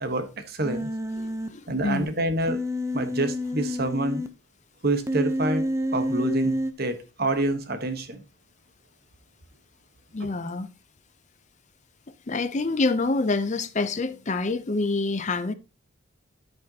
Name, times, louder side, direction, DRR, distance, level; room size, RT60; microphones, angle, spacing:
voice 1, 0.0-0.9 1.7-2.6 2.9-4.2 4.8-8.2 10.2-10.3, right 2 dB, 50° right, 1.1 m, -27 dB
Human voice, 0.6-1.5 2.5-4.3 5.1-6.7, equal, 15° right, 0.6 m, -28 dB
voice 2, 1.2-2.1 10.1-10.7 12.3-15.5, left 3 dB, 35° left, 0.6 m, -27 dB
13.0 x 5.4 x 2.8 m
head